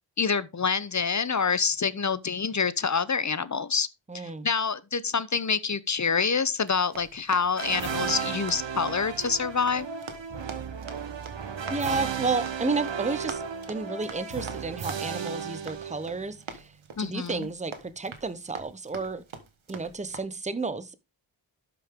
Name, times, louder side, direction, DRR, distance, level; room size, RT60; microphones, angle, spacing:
voice 1, 0.2-3.9 4.1-9.9 17.0-17.5, left 5 dB, 40° left, 0.8 m, -27 dB
voice 2, 4.1-4.5 11.7-13.4 13.7-16.7 17.0-19.2 19.7-21.0, right 3 dB, 15° right, 0.9 m, -31 dB
Run, 6.6-20.2, right 5 dB, 90° right, 1.5 m, -46 dB
sound 1, 7.6-16.4, right 6 dB, 70° right, 1.1 m, -34 dB
11.5 x 5.9 x 3.6 m
wide cardioid pair, 55°, 46 cm